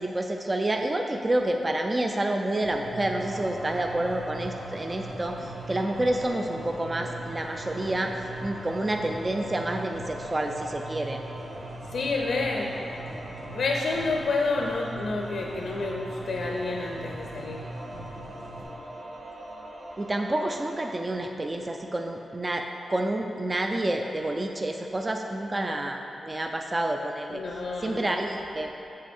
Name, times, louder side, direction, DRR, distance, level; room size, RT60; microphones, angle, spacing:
voice 1, 0.0-8.1 8.4-11.2 20.0-27.4 27.8-28.7, right 1 dB, 20° right, 3 dB, 0.3 m, -29 dB
sound 1, 2.6-18.6, right 2 dB, 75° right, 1.7 m, -41 dB
sound 2, 3.1-20.9, right 1 dB, 45° right, 0.8 m, -43 dB
voice 2, 11.9-12.7 13.5-17.7 27.3-28.0, left 3 dB, 65° left, 0 dB, 0.5 m, -29 dB
7.6 x 7.4 x 3.5 m, 2.9 s
wide cardioid pair, 165°, 0 cm